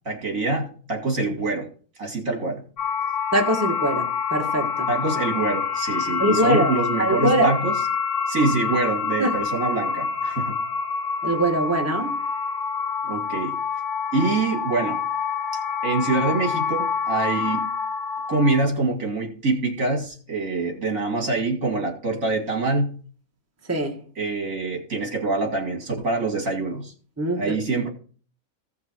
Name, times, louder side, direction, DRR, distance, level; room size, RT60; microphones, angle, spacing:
voice 1, 0.0-1.7 2.0-2.6 4.9-7.7 8.3-10.6 13.0-13.6 14.1-15.0 15.8-17.7 18.3-23.0 24.2-26.9 27.4-27.9, right 3 dB, 65° right, 2.9 m, -25 dB
sound 1, 2.8-18.7, left 6 dB, 55° left, 2.8 m, -27 dB
voice 2, 3.3-4.9 6.2-7.5 9.2-9.4 11.2-12.2 23.7-24.0 27.2-27.6, right 1 dB, 10° right, 1.4 m, -23 dB
16.0 x 6.0 x 4.6 m
omnidirectional pair, 1.5 m